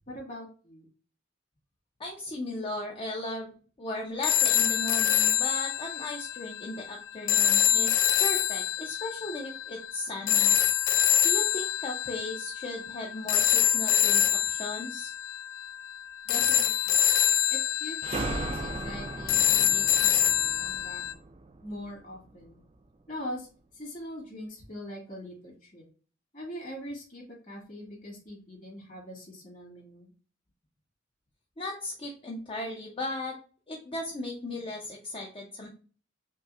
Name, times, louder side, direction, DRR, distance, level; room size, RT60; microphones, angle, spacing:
voice 1, 0.1-0.9 16.3-17.1 17.5-21.0 21.6-22.6 23.1-23.5 23.7-25.8 26.3-30.1, equal, 45° left, -2 dB, 1.8 m, -42 dB
voice 2, 2.0-10.5 11.2-15.1 31.6-33.4 33.7-35.7, left 1 dB, 30° left, -1 dB, 0.6 m, -37 dB
sound 1, 4.2-21.1, left 10 dB, 85° left, 0.3 m, -26 dB
sound 2, 18.0-22.5, right 3 dB, 30° right, 0.3 m, -37 dB
5.3 x 2.1 x 2.4 m, 0.38 s
head